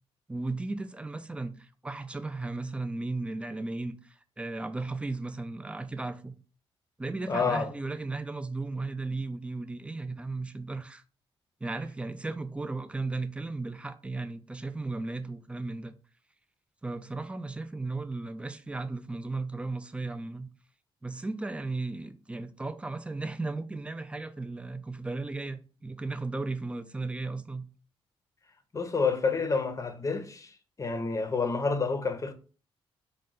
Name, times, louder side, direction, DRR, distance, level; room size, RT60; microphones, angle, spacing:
voice 1, 0.3-6.3 7.0-11.0 11.6-15.9 16.8-20.5 21.0-27.7, right 3 dB, 10° right, 0.4 m, -35 dB
voice 2, 7.3-7.7 28.7-32.3, left 4 dB, 30° left, 0.7 m, -29 dB
3.8 x 2.2 x 3.8 m
cardioid pair, 75°, 10 cm